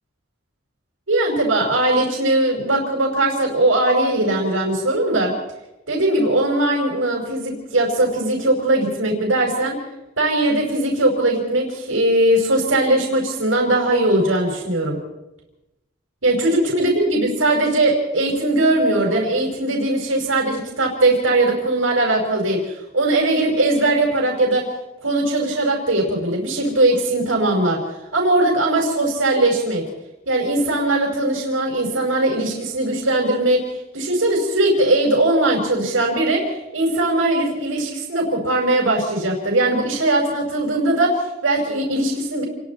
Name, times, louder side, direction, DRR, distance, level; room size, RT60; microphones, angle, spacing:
voice 1, 1.1-5.3 5.9-9.8 10.2-15.0 16.2-24.7 25.0-27.8 28.1-29.8 30.3-42.4, right 1 dB, 90° right, -1 dB, 5.1 m, -20 dB
28.5 x 21.5 x 4.2 m, 0.97 s
head